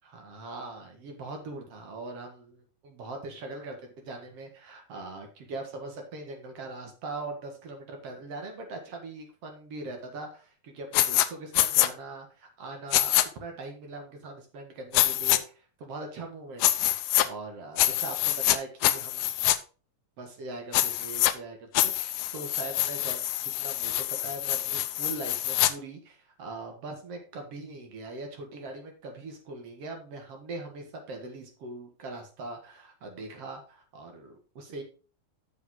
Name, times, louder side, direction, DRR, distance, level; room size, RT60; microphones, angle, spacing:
voice 1, 0.0-16.9 17.2-19.4 20.2-34.8, right 2 dB, 50° right, 3 dB, 2.4 m, -41 dB
sound 1, 10.9-11.3 11.5-11.9 12.9-13.3 14.9-15.4 16.6-17.3 17.8-18.6 18.8-19.6 20.7-21.3 21.8-25.7, left 15 dB, 80° left, 2.1 m, -25 dB
8.0 x 7.1 x 3.8 m, 0.36 s
omnidirectional pair, 3.9 m